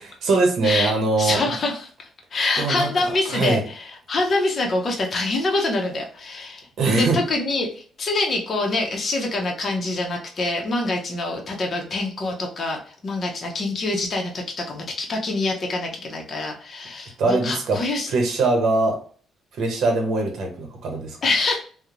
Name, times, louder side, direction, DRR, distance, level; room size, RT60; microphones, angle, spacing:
voice 1, 0.3-1.5 2.6-3.6 6.8-7.2 17.2-17.8 18.1-19.0 19.6-21.2, right 3 dB, 70° right, 2 dB, 0.7 m, -22 dB
voice 2, 1.2-6.7 7.0-18.1 21.2-21.6, left 2 dB, 45° left, 0 dB, 0.6 m, -25 dB
2.9 x 2.0 x 2.4 m, 0.43 s
cardioid pair, 90°, 0 cm